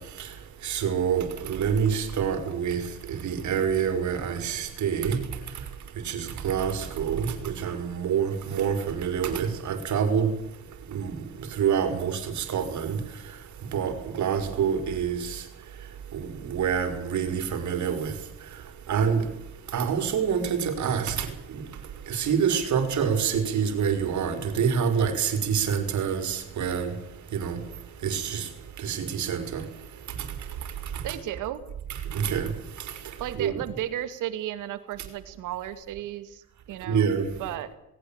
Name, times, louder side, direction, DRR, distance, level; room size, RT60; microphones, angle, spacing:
voice 1, 0.6-2.8 3.1-5.2 6.1-6.2 6.4-10.3 10.9-11.1 11.6-13.0 13.7-15.2 16.5-18.1 18.9-19.2 19.7-21.1 22.1-26.9 27.3-27.6 28.0-28.4 28.8-29.6 32.1-32.5 33.4-33.6 36.9-37.2, right 7 dB, 70° right, 5.0 m, -26 dB
voice 2, 31.0-31.6 33.2-37.1 37.4-37.7, right 12 dB, 90° right, 2.5 m, -34 dB
20.0 x 18.0 x 8.9 m
cardioid pair, 90°, 30 cm